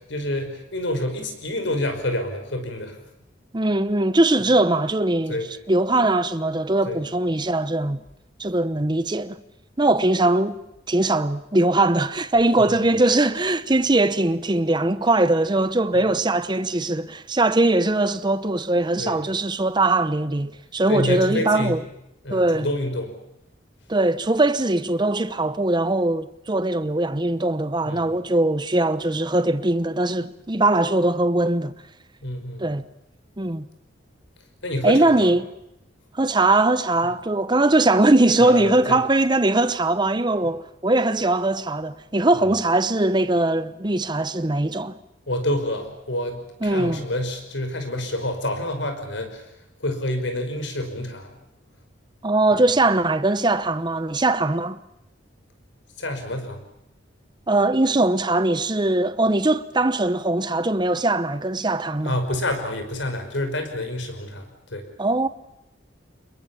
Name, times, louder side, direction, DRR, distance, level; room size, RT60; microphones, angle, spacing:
voice 1, 0.1-3.0 5.3-5.5 6.8-7.0 12.7-12.8 19.0-19.2 20.9-21.8 22.2-23.1 27.8-28.1 32.2-32.6 34.6-35.3 38.4-39.0 45.3-49.4 49.8-51.3 56.0-56.6 62.0-64.9, left 1 dB, 75° left, 5.4 m, -28 dB
voice 2, 3.5-5.4 5.7-8.0 8.4-9.4 9.8-10.6 10.9-21.8 22.3-22.7 23.9-31.7 32.6-32.9 33.4-33.7 34.8-35.5 36.1-45.0 46.6-47.0 52.2-54.8 57.5-62.2 65.0-65.3, right 2 dB, 25° right, 0.9 m, -21 dB
27.5 x 22.0 x 7.2 m
head